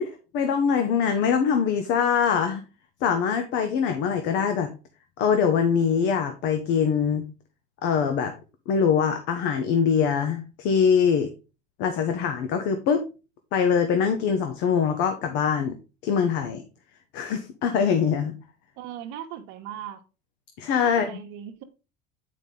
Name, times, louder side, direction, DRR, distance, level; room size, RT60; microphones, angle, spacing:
voice 1, 0.0-2.6 3.0-4.7 5.2-7.2 7.8-8.3 8.7-11.3 11.8-13.1 13.5-15.7 16.0-16.6 17.1-18.4 20.6-21.1, left 7 dB, 65° left, 1.1 m, -23 dB
voice 2, 18.8-20.0 20.8-21.6, right 10 dB, 70° right, 1.1 m, -38 dB
7.6 x 5.1 x 3.8 m
cardioid pair, 130°, 20 cm